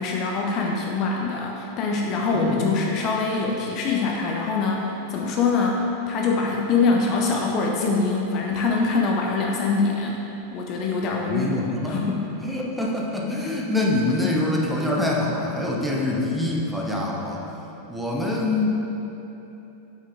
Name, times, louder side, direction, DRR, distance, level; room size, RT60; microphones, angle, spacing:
voice 1, 0.0-10.2 10.5-11.5 11.8-12.3, left 4 dB, 35° left, 0 dB, 0.6 m, -24 dB
voice 2, 11.2-12.1 12.4-17.4 17.9-18.8, left 2 dB, 5° right, -3 dB, 1.0 m, -25 dB
5.8 x 5.7 x 4.8 m, 3.0 s
figure-of-eight pair, 90°, 0 cm